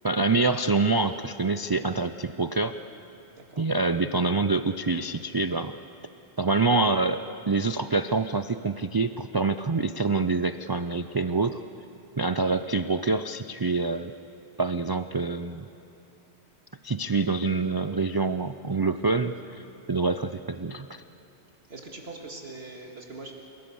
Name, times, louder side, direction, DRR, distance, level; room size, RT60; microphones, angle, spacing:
voice 1, 0.0-2.7 3.6-5.7 6.4-11.6 12.2-14.1 14.6-15.7 16.8-21.0, right 3 dB, 40° right, 10 dB, 0.3 m, -26 dB
voice 2, 3.4-3.7 21.7-23.4, right 3 dB, 70° right, 1 dB, 2.2 m, -42 dB
29.0 x 17.0 x 7.1 m, 3.0 s
omnidirectional pair, 1.1 m